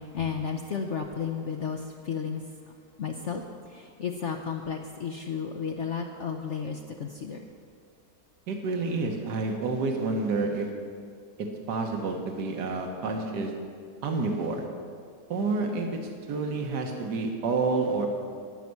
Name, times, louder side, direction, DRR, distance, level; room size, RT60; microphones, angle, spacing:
voice 1, 0.0-2.4 3.0-7.5, left 6 dB, 55° left, 3 dB, 0.8 m, -33 dB
voice 2, 8.5-10.7 11.7-13.5 14.0-14.6 15.3-15.9 16.3-18.1, right 3 dB, 70° right, 3 dB, 1.9 m, -29 dB
14.0 x 5.8 x 9.5 m, 2.2 s
omnidirectional pair, 1.9 m